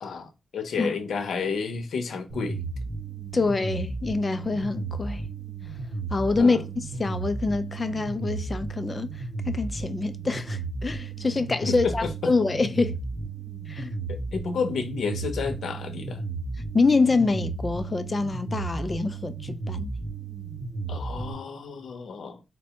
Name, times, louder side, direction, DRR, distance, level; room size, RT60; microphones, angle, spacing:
voice 1, 0.0-2.6 6.4-6.7 11.7-12.3 14.1-16.2 20.9-22.4, left 5 dB, 90° left, 0.7 m, -31 dB
sound 1, 2.3-21.3, right 3 dB, 40° right, 1.2 m, -34 dB
voice 2, 3.3-5.2 6.1-6.6 7.0-13.0 13.7-13.9 16.7-19.9, left 3 dB, 30° left, 0.4 m, -26 dB
4.2 x 2.2 x 2.8 m
wide cardioid pair, 105°, 0 cm